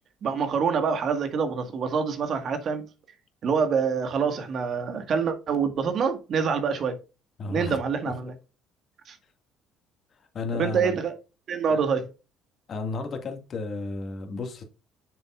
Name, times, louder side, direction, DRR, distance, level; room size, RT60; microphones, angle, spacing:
voice 1, 0.2-2.8 3.4-7.0 7.5-8.3 9.1-9.2 10.5-11.1 11.5-12.1, right 6 dB, 50° right, 1.7 m, -26 dB
voice 2, 7.4-7.8 8.0-8.2 10.1-11.0 11.7-11.8 12.7-14.6, left 3 dB, 45° left, 2.0 m, -33 dB
8.0 x 7.0 x 2.5 m
cardioid pair, 110°, 0 cm